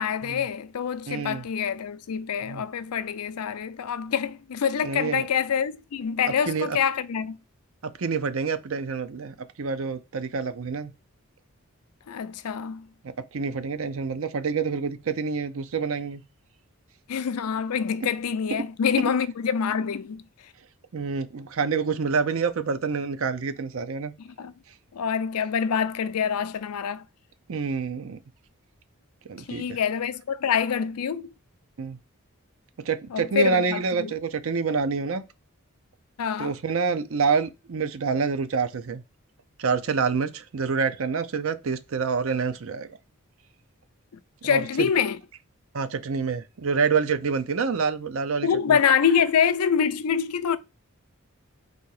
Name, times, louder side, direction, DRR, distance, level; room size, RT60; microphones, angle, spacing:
voice 1, 0.0-7.4 12.1-12.9 17.1-20.2 24.2-24.5 24.9-27.0 29.5-31.3 33.1-34.1 36.2-36.6 44.4-45.2 48.4-50.6, left 7 dB, 90° left, 0.5 m, -26 dB
voice 2, 1.1-1.4 2.4-2.6 4.8-5.3 6.5-6.8 8.0-10.9 13.3-16.2 18.5-18.6 20.9-24.1 27.5-28.2 29.3-29.8 31.8-32.0 32.8-35.2 36.4-39.0 39.6-42.9 44.4-44.9 45.7-48.8, right 5 dB, 65° right, 0.5 m, -27 dB
4.1 x 2.8 x 4.7 m
head